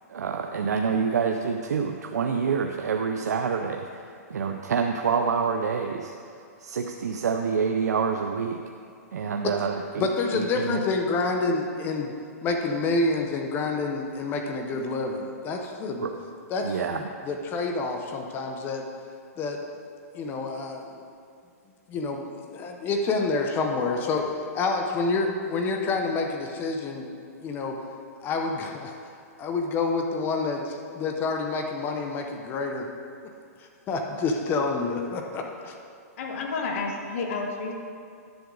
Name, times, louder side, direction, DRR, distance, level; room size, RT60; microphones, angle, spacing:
voice 1, 0.1-6.1 6.6-8.6 9.1-10.1 10.3-10.8 16.0-16.1 16.6-17.0, right 6 dB, 90° right, 4 dB, 0.5 m, -27 dB
voice 2, 10.0-12.1 12.4-16.1 16.5-18.9 19.4-19.6 20.1-20.9 21.9-27.1 27.4-27.8 28.2-29.0 29.4-32.9 33.9-35.7, left 3 dB, 25° left, 3 dB, 0.8 m, -28 dB
voice 3, 36.2-37.7, left 4 dB, 55° left, 2 dB, 1.4 m, -30 dB
10.5 x 7.7 x 3.9 m, 2.3 s
hypercardioid pair, 145°, 9 cm